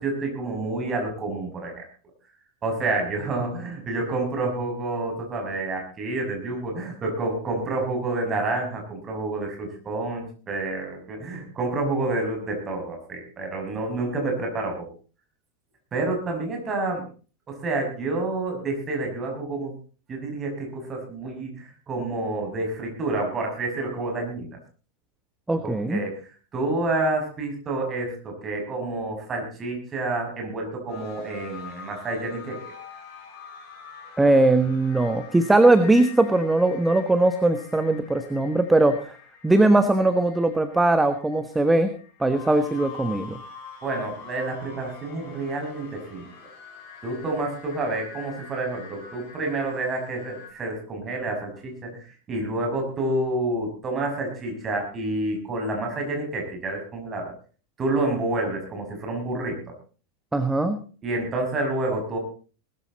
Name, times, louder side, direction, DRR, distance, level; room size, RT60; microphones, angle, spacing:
voice 1, 0.0-1.8 2.6-14.9 15.9-17.0 17.5-19.7 20.1-24.6 25.6-26.2 26.5-32.6 43.8-46.3 47.0-57.3 57.8-59.6 61.0-62.2, right 2 dB, 25° right, 2 dB, 6.3 m, -29 dB
voice 2, 25.5-26.0 34.2-39.1 39.4-41.9 42.2-43.4 60.3-60.8, right 2 dB, 5° right, 10 dB, 1.2 m, -20 dB
sound 1, 30.9-50.5, left 7 dB, 40° left, 5.6 m, -45 dB
19.5 x 13.5 x 4.1 m, 0.38 s
figure-of-eight pair, 90°, 0 cm